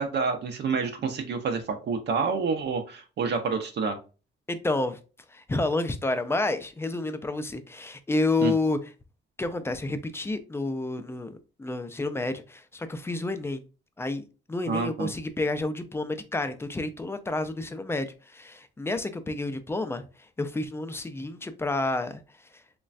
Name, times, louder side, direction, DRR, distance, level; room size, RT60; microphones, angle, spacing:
voice 1, 0.0-4.0 8.4-8.5 14.7-15.1, right 5 dB, 60° right, 0.6 m, -28 dB
voice 2, 4.5-5.0 5.3-8.8 9.4-13.6 14.0-22.2, left 2 dB, 10° left, 0.3 m, -30 dB
3.1 x 2.2 x 2.4 m
cardioid pair, 90°, 20 cm